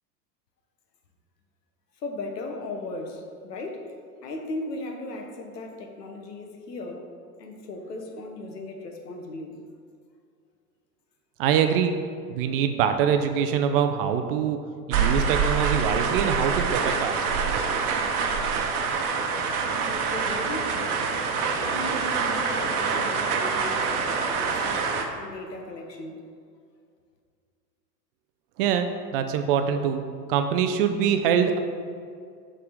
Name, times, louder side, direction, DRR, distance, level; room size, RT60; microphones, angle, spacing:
voice 1, 2.0-4.0 4.2-7.1 7.4-9.6 19.8-21.1 21.6-26.2, left 2 dB, 75° left, 3 dB, 1.1 m, -37 dB
voice 2, 11.4-11.9 12.3-14.6 14.9-17.4 28.6-30.0 30.3-31.6, right 8 dB, 40° right, 7 dB, 0.4 m, -24 dB
sound 1, 14.9-25.0, right 5 dB, 60° right, 0.9 m, -26 dB
6.8 x 3.7 x 4.9 m, 2.2 s
figure-of-eight pair, 90°, 49 cm